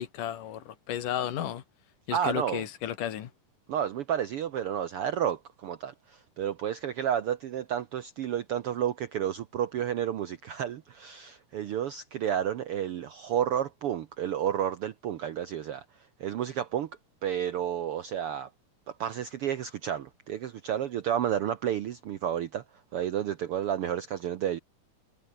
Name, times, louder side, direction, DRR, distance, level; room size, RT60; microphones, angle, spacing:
voice 1, 0.0-1.6 2.1-3.3, left 11 dB, 85° left, 3.2 m, -33 dB
voice 2, 2.1-2.6 3.7-15.8 16.2-16.9 17.2-18.5 18.9-22.6 22.9-24.6, right 10 dB, 75° right, 1.3 m, -31 dB
omnidirectional pair, 3.7 m